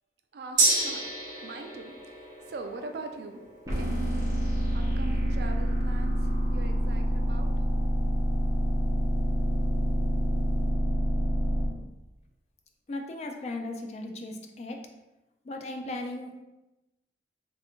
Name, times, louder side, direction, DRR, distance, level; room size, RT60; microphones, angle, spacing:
voice 1, 0.3-1.0 1.4-3.4 3.7-4.3 4.7-6.2 6.5-7.5, right 3 dB, 65° right, 5 dB, 0.4 m, -41 dB
Gong, 0.6-8.3 8.7-8.8, right 2 dB, 45° right, 0.9 m, -33 dB
sound 1, 3.7-11.7, equal, 20° right, 0.9 m, -27 dB
voice 2, 12.9-14.9 15.4-16.4, left 2 dB, 35° left, 3 dB, 0.4 m, -37 dB
3.3 x 2.5 x 3.6 m, 0.99 s
head